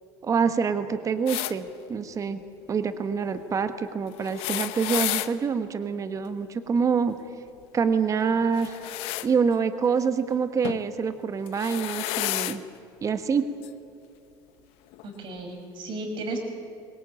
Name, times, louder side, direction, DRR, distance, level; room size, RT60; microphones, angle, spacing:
voice 1, 0.2-2.4 2.7-7.1 7.7-8.8 9.2-12.6 13.0-13.5, right 6 dB, 35° right, 10 dB, 1.4 m, -26 dB
sound 1, 1.3-1.5 4.2-5.3 8.5-9.3 10.6-10.8 11.5-12.6 13.6-13.7 14.9-15.0, left 17 dB, 70° left, 1.0 m, -31 dB
voice 2, 15.0-16.4, right 2 dB, 55° right, 4 dB, 5.8 m, -34 dB
23.0 x 19.5 x 8.8 m, 2.5 s
supercardioid pair, 100°, 10 cm